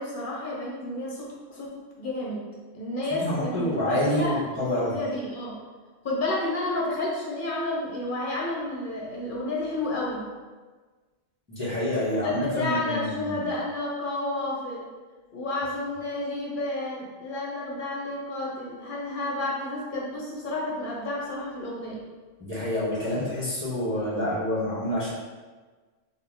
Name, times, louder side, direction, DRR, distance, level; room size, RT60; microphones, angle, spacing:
voice 1, 0.0-2.5 2.7-5.6 6.0-10.3 12.2-14.9 15.3-22.0, left 2 dB, 50° left, -4 dB, 0.7 m, -31 dB
voice 2, 3.2-5.0 11.5-13.5 22.4-25.1, left 1 dB, 10° right, -12 dB, 1.2 m, -27 dB
4.0 x 2.0 x 3.6 m, 1.4 s
omnidirectional pair, 1.3 m